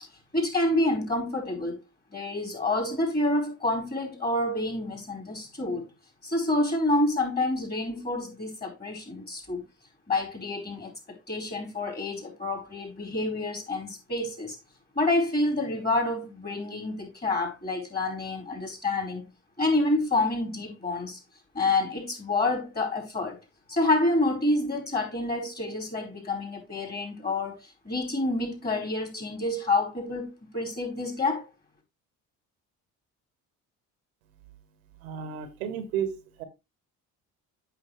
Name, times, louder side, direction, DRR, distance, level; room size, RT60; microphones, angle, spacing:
voice 1, 0.3-1.8 2.1-5.8 6.2-9.6 10.1-10.9 11.3-14.6 14.9-19.2 19.6-21.2 21.5-23.4 23.7-31.4, left 2 dB, 25° left, 4.4 m, -28 dB
voice 2, 35.0-36.1 36.4-36.5, right 8 dB, 90° right, 1.4 m, -32 dB
8.2 x 6.1 x 3.2 m
hypercardioid pair, 60°, 40 cm